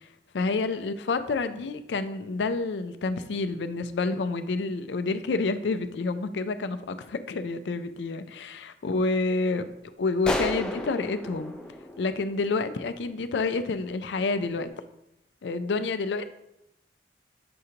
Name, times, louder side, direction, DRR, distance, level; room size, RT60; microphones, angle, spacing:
voice 1, 0.3-11.5 12.0-14.7 15.4-16.3, left 3 dB, 80° left, 11 dB, 0.4 m, -29 dB
sound 1, 10.2-12.8, left 1 dB, 5° left, 0.4 m, -33 dB
6.8 x 5.0 x 2.8 m, 0.83 s
head